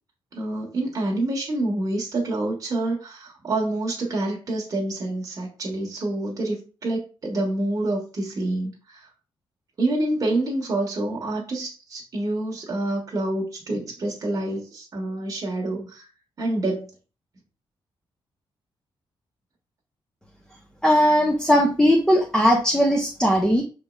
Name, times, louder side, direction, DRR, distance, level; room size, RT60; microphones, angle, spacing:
voice 1, 0.3-9.1 9.8-16.1 16.4-16.9, right 2 dB, 40° right, 1.0 m, -27 dB
voice 2, 20.8-23.6, equal, 5° left, 0.6 m, -18 dB
5.4 x 3.0 x 2.3 m
cardioid pair, 115°, 9 cm